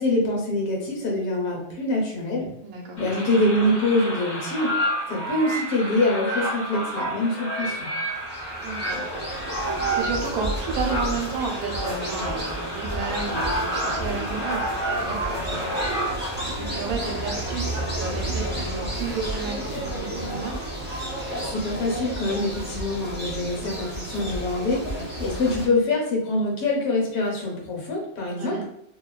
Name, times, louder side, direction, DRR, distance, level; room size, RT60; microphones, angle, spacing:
voice 1, 0.0-2.5 3.0-4.7 5.1-7.9 21.3-28.6, left 2 dB, 85° left, -1 dB, 1.3 m, -25 dB
voice 2, 2.6-3.0 8.6-9.6 9.9-20.6 24.7-25.1 28.2-28.6, right 4 dB, 80° right, 1 dB, 1.0 m, -33 dB
sound 1, 3.0-16.5, right 1 dB, 55° left, 1.0 m, -30 dB
sound 2, 8.0-25.7, right 1 dB, 15° right, 0.4 m, -31 dB
2.7 x 2.2 x 2.2 m, 0.73 s
omnidirectional pair, 1.5 m